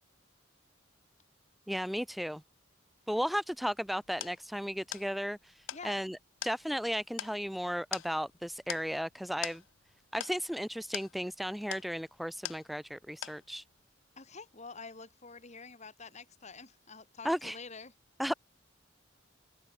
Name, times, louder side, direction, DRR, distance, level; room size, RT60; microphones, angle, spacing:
voice 1, 1.7-2.4 3.1-6.2 6.4-9.6 10.1-13.6 17.2-17.6 18.2-18.3, equal, ahead, 0.3 m, -35 dB
sound 1, 3.5-13.0 13.2-13.8, left 12 dB, 85° left, 0.6 m, -44 dB
voice 2, 5.7-6.0 14.2-17.9, left 4 dB, 35° left, 2.0 m, -48 dB
head